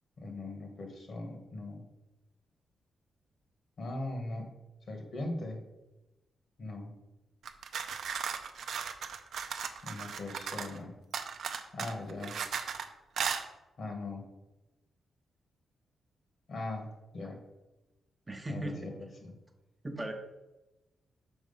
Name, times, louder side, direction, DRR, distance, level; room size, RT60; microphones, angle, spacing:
voice 1, 0.2-1.8 3.8-4.5 4.9-5.6 6.6-6.9 9.8-10.9 11.7-12.4 13.8-14.3 16.5-17.4 18.5-19.4, left 2 dB, 55° left, 3 dB, 1.7 m, -40 dB
sound 1, 7.4-10.8 11.1-12.9 13.2-13.4, right 6 dB, 75° right, 0.6 m, -36 dB
voice 2, 18.3-18.9 19.8-20.1, right 1 dB, 20° right, 3 dB, 0.9 m, -37 dB
6.2 x 4.5 x 5.6 m, 1.0 s
cardioid pair, 95°, 0 cm